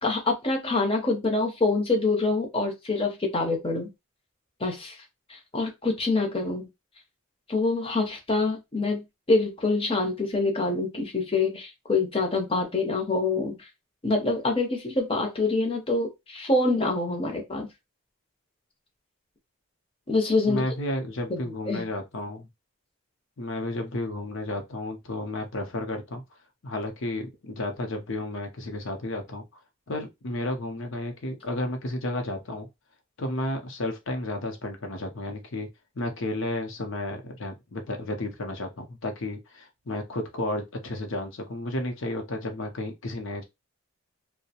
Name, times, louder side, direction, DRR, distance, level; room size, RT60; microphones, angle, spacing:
voice 1, 0.0-3.9 4.6-5.0 5.3-6.7 7.5-13.6 14.0-17.7 20.1-20.6 21.3-21.4 21.7-21.9, left 3 dB, 25° left, 0.7 m, -26 dB
voice 2, 20.5-22.5 23.4-26.2 26.6-29.4 29.9-32.7 33.2-35.7 36.0-43.4, left 1 dB, 60° left, 0.7 m, -32 dB
2.7 x 2.0 x 2.8 m
head